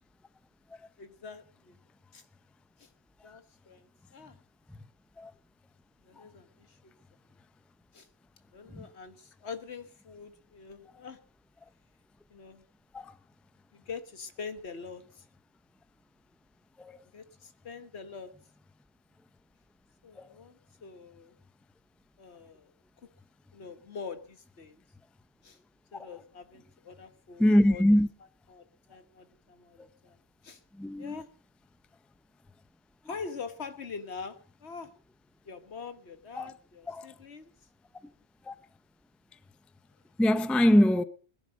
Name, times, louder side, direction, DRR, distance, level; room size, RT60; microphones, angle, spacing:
voice 1, 1.0-1.8 2.1-2.2 2.8-2.9 3.2-4.4 6.0-6.9 7.9-8.1 8.5-11.2 12.3-12.6 13.7-15.2 17.1-18.3 20.0-21.3 22.2-22.7 23.5-24.8 25.4-25.6 25.9-27.8 28.5-30.2 30.4-30.6 31.0-31.3 33.0-34.9 35.4-37.5, left 5 dB, 75° left, 1.6 m, -44 dB
voice 2, 27.4-28.1 30.8-31.2 36.4-36.5 36.9-37.1 38.5-38.6 40.2-41.0, equal, ahead, 0.5 m, -22 dB
21.0 x 11.0 x 5.1 m
omnidirectional pair, 1.1 m